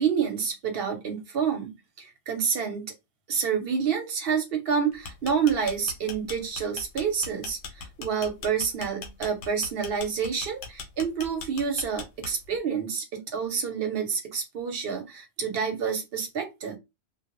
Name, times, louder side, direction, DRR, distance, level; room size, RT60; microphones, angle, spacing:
voice 1, 0.0-2.9 3.3-16.8, right 6 dB, 60° right, 0.8 m, -28 dB
sound 1, 4.9-12.6, left 5 dB, 85° left, 0.9 m, -39 dB
2.1 x 2.0 x 2.9 m
omnidirectional pair, 1.3 m